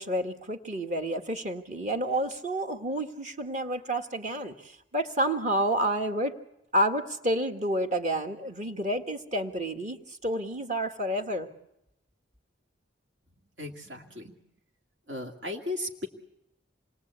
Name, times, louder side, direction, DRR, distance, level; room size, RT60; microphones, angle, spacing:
voice 1, 0.0-6.3 6.7-11.5, right 1 dB, 40° right, 5 dB, 1.9 m, -29 dB
voice 2, 13.6-14.3 15.1-16.1, left 2 dB, 70° right, 1 dB, 2.3 m, -36 dB
27.5 x 21.5 x 8.3 m, 0.85 s
head